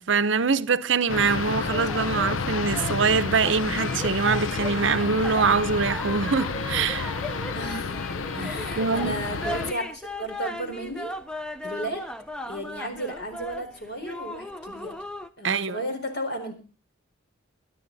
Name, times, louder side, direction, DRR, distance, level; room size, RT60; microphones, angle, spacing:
voice 1, 0.0-7.1 8.4-8.5 8.8-9.2 15.4-15.8, right 5 dB, 65° right, 0.7 m, -24 dB
sound 1, 1.1-9.7, left 5 dB, 80° left, 0.6 m, -30 dB
sound 2, 1.7-15.3, left 1 dB, 5° left, 0.7 m, -37 dB
voice 2, 7.5-8.0 8.3-11.1 11.6-12.0 12.5-14.9 15.4-16.5, right 1 dB, 55° left, 4.4 m, -34 dB
23.5 x 10.0 x 4.0 m
head